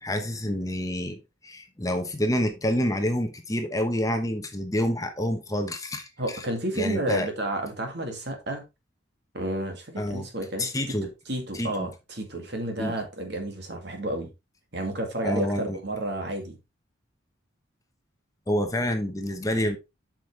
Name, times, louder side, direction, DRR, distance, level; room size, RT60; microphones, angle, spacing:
voice 1, 0.0-6.4 6.8-7.3 10.0-10.3 10.6-11.1 11.5-11.9 12.8-12.9 15.2-15.8 18.5-19.8, left 1 dB, 15° left, 0.9 m, -28 dB
voice 2, 6.2-8.6 9.3-10.7 11.0-14.3 14.7-16.6, right 1 dB, 55° right, 2.2 m, -31 dB
8.6 x 6.2 x 3.2 m
head